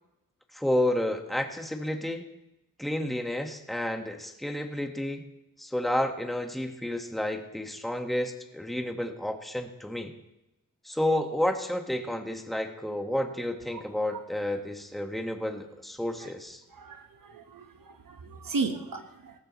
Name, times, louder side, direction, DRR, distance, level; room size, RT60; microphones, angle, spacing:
voice 1, 0.5-2.3 2.8-5.2 5.6-10.1 10.8-16.6, left 1 dB, ahead, 4 dB, 1.6 m, -30 dB
voice 2, 16.8-17.6 18.1-19.3, right 4 dB, 70° right, 6 dB, 1.4 m, -34 dB
19.0 x 14.5 x 3.2 m, 0.93 s
cardioid pair, 55°, 34 cm